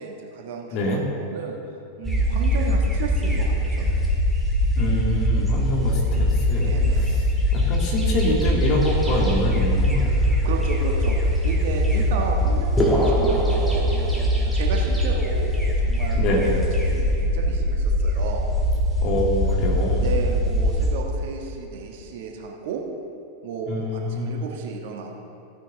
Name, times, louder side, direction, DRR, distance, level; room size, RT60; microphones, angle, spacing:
voice 1, 0.0-1.6 2.0-4.0 6.6-7.2 10.2-18.4 20.0-22.8 23.4-25.2, right 5 dB, 50° right, 1 dB, 1.4 m, -33 dB
sound 1, 2.0-21.0, equal, ahead, 2.3 m, -22 dB
voice 2, 4.8-6.7 6.9-7.0 7.5-10.2 12.0-12.1 16.1-16.6 19.0-20.1 23.7-24.4, left 1 dB, 40° left, -1 dB, 2.3 m, -25 dB
sound 2, 12.8-14.7, equal, 15° left, 1.7 m, -23 dB
15.0 x 9.0 x 3.7 m, 2.9 s
figure-of-eight pair, 90°, 0 cm